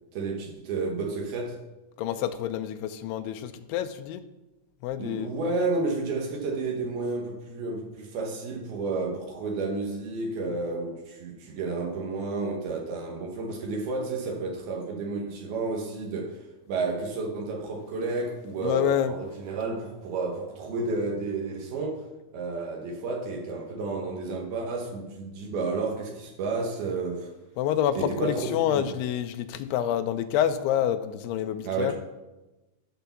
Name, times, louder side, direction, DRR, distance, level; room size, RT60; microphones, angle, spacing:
voice 1, 0.1-1.6 5.0-16.4 16.7-22.0 22.3-27.3 28.0-28.9 31.6-31.9, right 3 dB, 75° right, 0 dB, 2.9 m, -31 dB
voice 2, 2.0-4.2 4.8-5.3 18.6-19.1 27.6-31.9, left 10 dB, 85° left, 10 dB, 2.6 m, -27 dB
11.5 x 4.6 x 6.9 m, 1.0 s
omnidirectional pair, 4.6 m